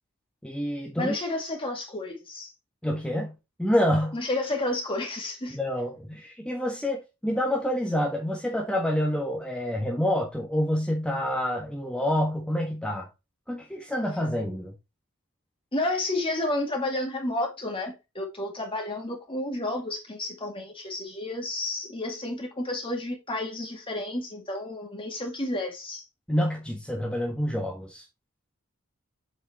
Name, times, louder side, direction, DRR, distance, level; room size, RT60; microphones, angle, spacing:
voice 1, 0.4-1.1 2.8-3.3 3.6-4.2 5.5-13.1 13.5-14.7 26.3-28.0, equal, 5° left, 1.4 m, -27 dB
voice 2, 1.0-2.5 4.1-5.6 15.7-26.0, left 2 dB, 25° left, 2.1 m, -31 dB
7.8 x 4.8 x 4.2 m
head